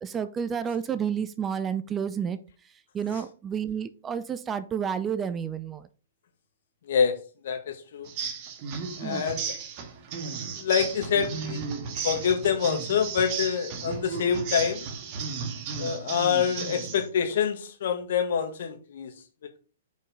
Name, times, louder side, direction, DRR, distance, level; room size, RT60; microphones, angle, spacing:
voice 1, 0.0-2.4 2.9-5.8 9.0-9.3, right 7 dB, 20° right, 13 dB, 0.6 m, -30 dB
voice 2, 6.9-8.1 9.0-9.6 10.2-10.3 10.6-11.7 12.0-14.9 15.8-19.1 19.4-19.6, left 7 dB, 60° left, 6 dB, 1.9 m, -26 dB
sound 1, 8.0-17.1, right 6 dB, 40° right, 1.8 m, -34 dB
9.4 x 5.4 x 3.9 m, 0.35 s
hypercardioid pair, 120°, 0 cm